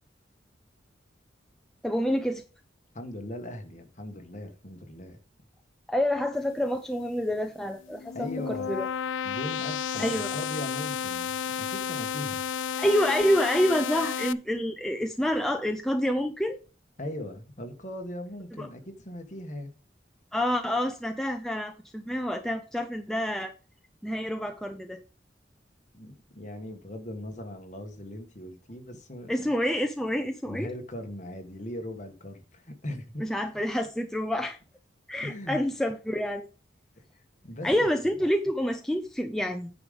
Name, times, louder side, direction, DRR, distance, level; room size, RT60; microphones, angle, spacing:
voice 1, 1.8-2.4 5.9-8.9 10.0-10.4 12.8-16.6 18.6-18.7 20.3-23.5 24.0-25.0 29.3-30.7 33.2-34.6 35.1-36.5 37.6-39.7, equal, ahead, 0.5 m, -28 dB
voice 2, 2.9-5.2 8.1-8.7 9.2-11.3 11.6-12.4 17.0-19.7 25.9-29.5 30.4-33.3 35.2-35.6 37.1-37.7, left 1 dB, 40° left, 1.4 m, -39 dB
sound 1, 7.8-14.3, left 8 dB, 85° left, 0.4 m, -32 dB
9.5 x 5.0 x 5.2 m
head